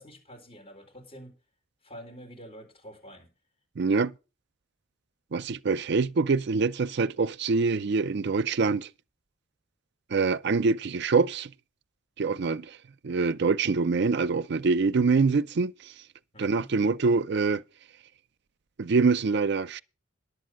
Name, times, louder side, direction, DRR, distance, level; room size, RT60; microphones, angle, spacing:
voice 1, 0.0-1.3 1.8-3.3 16.3-16.7, equal, 30° left, 4.2 m, -47 dB
voice 2, 3.8-4.1 5.3-8.9 10.1-11.5 12.2-12.8 13.0-15.7 16.4-17.6 18.8-19.8, right 4 dB, 55° right, 0.5 m, -25 dB
10.5 x 8.0 x 6.3 m
head